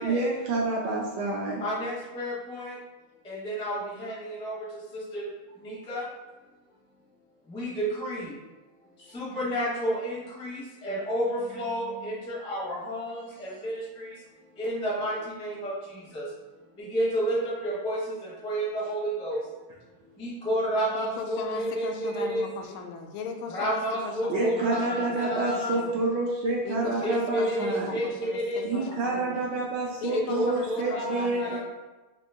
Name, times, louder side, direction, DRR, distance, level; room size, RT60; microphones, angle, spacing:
voice 1, 0.0-1.6 24.3-28.0 28.6-31.6, right 3 dB, 70° right, -2 dB, 1.1 m, -28 dB
voice 2, 1.6-2.8 3.2-6.1 7.5-8.4 9.1-14.1 14.6-16.3 16.8-19.5 20.2-22.4 23.5-25.8 27.0-28.9 30.1-31.6, equal, 10° left, -6 dB, 0.3 m, -31 dB
voice 3, 20.9-25.9 26.6-29.4 30.0-31.6, left 5 dB, 80° left, 4 dB, 1.4 m, -38 dB
3.7 x 2.8 x 3.5 m, 1.2 s
omnidirectional pair, 2.2 m